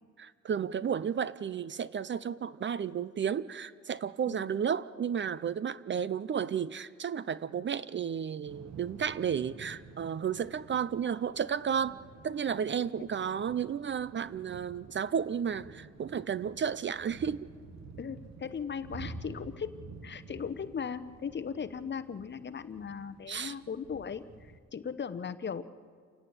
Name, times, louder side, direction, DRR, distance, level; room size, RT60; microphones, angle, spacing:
voice 1, 0.2-12.0 12.2-17.5 23.3-23.5, right 7 dB, 40° right, 17 dB, 0.6 m, -32 dB
Thunder / Rain, 8.4-24.6, right 4 dB, 65° right, 1.8 m, -50 dB
voice 2, 18.0-25.6, left 6 dB, 35° left, 13 dB, 1.0 m, -38 dB
29.0 x 11.0 x 8.8 m, 2.1 s
cardioid pair, 90°, 30 cm